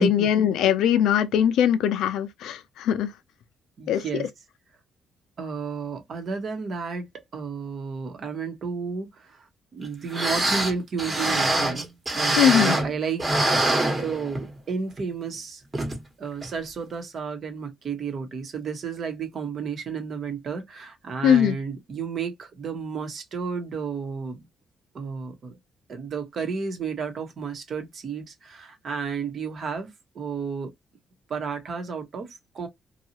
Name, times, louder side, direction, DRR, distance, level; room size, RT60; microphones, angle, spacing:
voice 1, 0.0-3.1 3.9-4.0 12.4-12.7 21.2-21.6, left 9 dB, 85° left, 0.4 m, -21 dB
voice 2, 3.8-4.3 5.4-7.1 7.3-9.5 9.7-11.8 12.1-13.5 13.8-15.6 16.2-24.4 24.9-25.5 25.9-29.9 30.1-30.7 31.3-32.7, right 5 dB, 55° right, 1.0 m, -32 dB
sound 1, 9.8-9.9 10.1-12.9 13.2-14.6 15.0-15.1 15.7-16.0 16.4-16.5, right 1 dB, 25° right, 1.1 m, -24 dB
2.7 x 2.3 x 2.8 m
cardioid pair, 90°, 0 cm